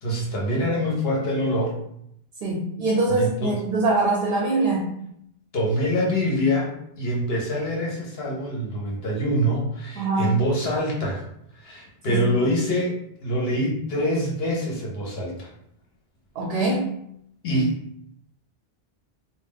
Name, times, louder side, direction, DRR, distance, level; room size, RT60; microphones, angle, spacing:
voice 1, 0.0-1.8 3.1-3.6 5.5-6.7 7.0-11.2 11.5-15.5 17.4-17.8, equal, 70° left, -2 dB, 1.1 m, -25 dB
voice 2, 2.4-4.9 10.0-10.3 12.1-12.2 16.4-16.9, right 2 dB, 70° right, -2 dB, 0.8 m, -23 dB
2.3 x 2.3 x 3.4 m, 0.73 s
omnidirectional pair, 1.1 m